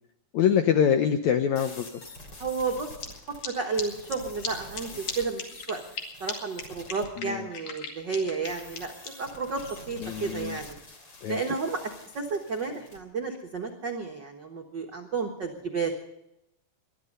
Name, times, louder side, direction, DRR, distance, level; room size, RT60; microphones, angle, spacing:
voice 1, 0.3-1.9 7.2-7.5 10.0-10.6 11.2-11.4, left 8 dB, 85° left, 8 dB, 1.6 m, -24 dB
sound 1, 1.6-7.1 8.4-13.0, left 2 dB, 30° left, 3.0 m, -47 dB
voice 2, 2.4-2.9 3.4-5.8 6.2-10.8 11.3-16.0, right 4 dB, 70° right, 2 dB, 1.0 m, -32 dB
sound 2, 3.0-3.1 3.4-3.5 3.8-3.9 4.1-4.2 4.4-4.5 4.7-4.8 5.1-5.2 5.4-6.0 6.3-6.4 6.6-6.7 6.9-9.1, left 6 dB, 55° left, 3.4 m, -35 dB
20.5 x 12.5 x 5.4 m, 0.85 s
omnidirectional pair, 4.3 m